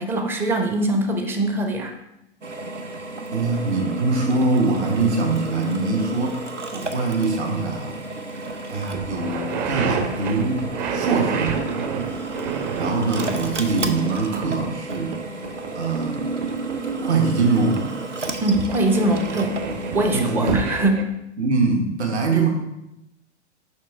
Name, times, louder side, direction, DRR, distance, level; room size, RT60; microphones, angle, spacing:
voice 1, 0.0-1.9 18.4-19.6 19.9-21.1, right 1 dB, 5° right, 4 dB, 0.4 m, -22 dB
Drill, 2.4-20.9, right 3 dB, 90° right, 0.7 m, -32 dB
voice 2, 3.3-6.4 6.7-8.0 8.7-11.9 12.7-15.2 15.7-16.2 17.0-17.8 20.1-20.7 21.4-22.5, right 3 dB, 65° right, 2 dB, 1.3 m, -23 dB
sound 1, 8.5-8.6 8.9-17.5 17.8-21.0, right 6 dB, 40° right, 0.8 m, -30 dB
6.3 x 5.4 x 3.5 m, 0.87 s
figure-of-eight pair, 100°, 35 cm